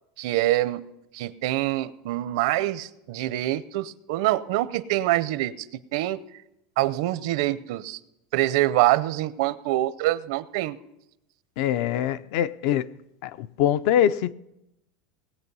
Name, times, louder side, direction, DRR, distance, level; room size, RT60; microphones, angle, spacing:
voice 1, 0.2-0.9 1.1-5.7 5.9-6.2 6.8-8.0 8.3-10.8, right 16 dB, 65° right, 0.6 m, -25 dB
voice 2, 11.6-12.9 13.2-14.3, left 10 dB, 55° left, 0.4 m, -23 dB
19.0 x 8.4 x 5.4 m
supercardioid pair, 170°, 3 cm